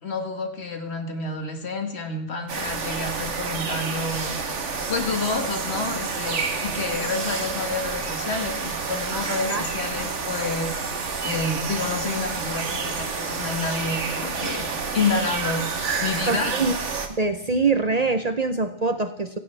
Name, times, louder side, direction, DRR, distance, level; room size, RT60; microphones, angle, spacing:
voice 1, 0.0-14.7 14.9-15.7 16.0-16.6, left 3 dB, 65° left, 5 dB, 1.9 m, -29 dB
sound 1, 2.5-17.1, right 4 dB, 85° right, 1.7 m, -29 dB
voice 2, 16.3-16.7 17.1-19.4, right 3 dB, 40° right, 9 dB, 0.7 m, -24 dB
16.0 x 15.5 x 3.4 m, 0.80 s
omnidirectional pair, 1.2 m